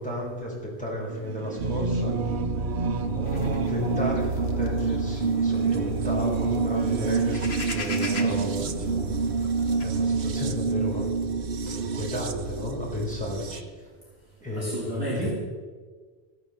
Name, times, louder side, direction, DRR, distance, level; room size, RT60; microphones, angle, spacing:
voice 1, 0.0-2.2 3.0-9.2 9.8-11.1 11.5-13.9 14.4-15.3, left 1 dB, 5° left, -5 dB, 5.4 m, -33 dB
Singing / Musical instrument, 1.1-11.2, right 8 dB, 85° right, 1.0 m, -36 dB
sound 1, 1.6-13.6, right 4 dB, 60° right, 1.0 m, -27 dB
sound 2, 3.3-9.8, left 4 dB, 75° left, 1.6 m, -42 dB
voice 2, 14.5-15.3, right 1 dB, 20° right, -6 dB, 3.1 m, -32 dB
14.5 x 12.0 x 7.1 m, 1.5 s
omnidirectional pair, 1.1 m